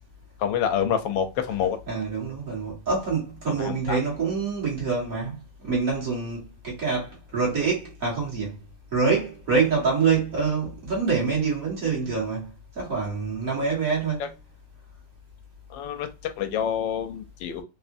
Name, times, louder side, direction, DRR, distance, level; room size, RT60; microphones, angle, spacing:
voice 1, 0.4-1.8 3.6-4.0 14.2-14.3 15.7-17.6, left 8 dB, 90° left, 1.3 m, -27 dB
voice 2, 1.9-8.5 8.9-14.3, right 5 dB, 50° right, 1.7 m, -26 dB
3.6 x 2.1 x 2.5 m
omnidirectional pair, 2.0 m